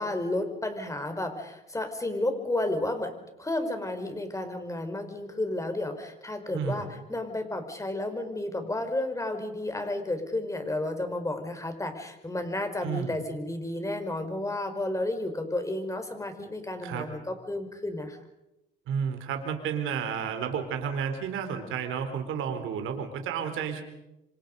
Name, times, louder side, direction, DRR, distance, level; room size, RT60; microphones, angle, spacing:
voice 1, 0.0-18.2, left 1 dB, 15° left, 7 dB, 4.9 m, -32 dB
voice 2, 12.8-13.1 16.8-17.1 18.9-23.8, right 7 dB, 90° right, 6 dB, 3.8 m, -31 dB
26.5 x 26.5 x 5.3 m, 0.92 s
cardioid pair, 90°, 20 cm